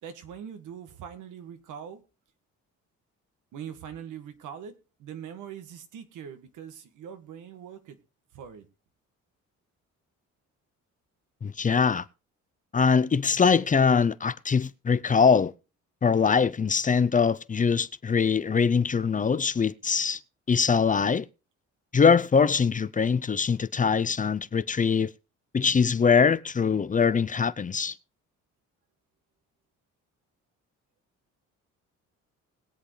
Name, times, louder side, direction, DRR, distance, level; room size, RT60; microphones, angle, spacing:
voice 1, 0.0-2.0 3.5-4.7 5.0-8.0 8.3-8.7, right 8 dB, 85° right, 1.9 m, -42 dB
voice 2, 11.4-12.0 12.7-15.5 16.0-20.2 20.5-21.3 21.9-25.1 25.5-27.9, left 6 dB, 25° left, 0.6 m, -23 dB
20.5 x 8.1 x 3.2 m
cardioid pair, 90°, 30 cm